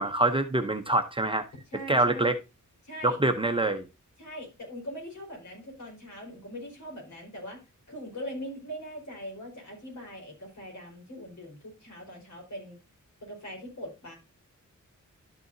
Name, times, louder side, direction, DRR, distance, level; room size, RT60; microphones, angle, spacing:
voice 1, 0.0-1.4 1.9-2.3 3.0-3.8, right 2 dB, 15° right, 0.7 m, -25 dB
voice 2, 1.7-2.3 2.8-3.2 4.2-7.6 7.9-12.8 13.2-14.1, equal, 65° left, 4.6 m, -41 dB
12.0 x 6.7 x 2.7 m
wide cardioid pair, 155°, 30 cm